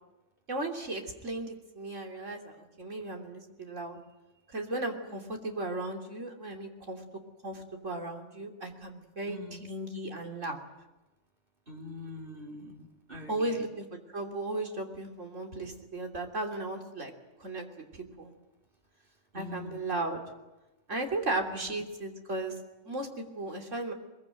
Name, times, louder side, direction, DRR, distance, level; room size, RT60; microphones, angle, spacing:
voice 1, 0.5-4.0 4.5-7.0 7.4-10.7 13.3-13.9 14.1-17.1 17.4-17.7 17.9-18.3 19.3-20.2 20.9-22.5 22.8-23.9, right 2 dB, 85° right, 2 dB, 3.5 m, -35 dB
voice 2, 9.3-9.7 11.7-13.7 19.3-19.8 21.5-21.7, left 1 dB, 45° right, 1 dB, 3.9 m, -44 dB
22.5 x 22.5 x 9.1 m, 1.0 s
omnidirectional pair, 1.3 m